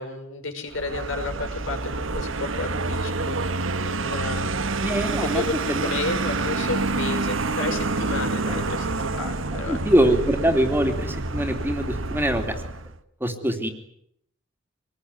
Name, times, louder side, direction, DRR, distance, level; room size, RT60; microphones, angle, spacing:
voice 1, 0.0-3.5 3.8-4.9 5.2-9.8, left 2 dB, 70° left, 5 dB, 6.0 m, -32 dB
Vehicle, 0.7-13.0, right 3 dB, 70° right, 1.4 m, -28 dB
voice 2, 4.8-5.8 9.7-12.6 13.2-13.7, right 1 dB, 10° right, 5 dB, 3.0 m, -23 dB
26.0 x 20.5 x 9.8 m, 0.75 s
head